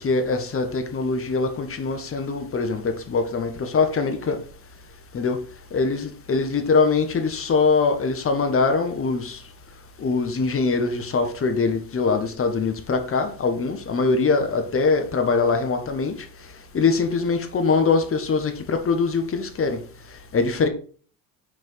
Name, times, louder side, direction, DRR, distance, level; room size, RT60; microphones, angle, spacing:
voice 1, 0.0-4.4 5.1-5.4 5.7-9.4 10.0-16.1 16.7-19.8 20.3-20.7, left 4 dB, 30° left, 1.5 m, -22 dB
6.3 x 4.8 x 4.6 m
hypercardioid pair, 65°, 44 cm